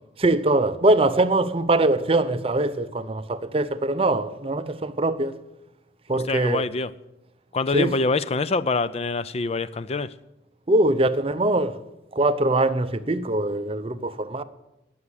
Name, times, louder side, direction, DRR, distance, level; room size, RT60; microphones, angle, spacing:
voice 1, 0.2-5.4 6.1-6.6 7.7-8.0 10.7-11.8 12.1-14.4, right 2 dB, 30° right, 0.7 m, -22 dB
voice 2, 6.1-6.9 7.5-10.1, left 3 dB, 35° left, 0.4 m, -25 dB
19.5 x 7.2 x 8.3 m
head